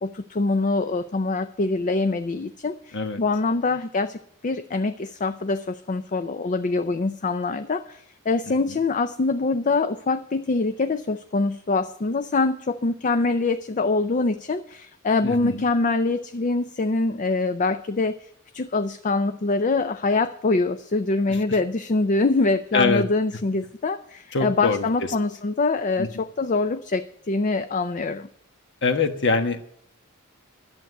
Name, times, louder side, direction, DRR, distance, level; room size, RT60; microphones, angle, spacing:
voice 1, 0.0-28.3, left 3 dB, 35° left, 10 dB, 0.4 m, -24 dB
voice 2, 15.2-15.6 21.3-21.4 22.7-23.0 24.3-25.1 26.0-26.1 28.8-29.7, left 4 dB, 55° left, 8 dB, 1.2 m, -24 dB
12.0 x 7.9 x 7.9 m, 0.68 s
head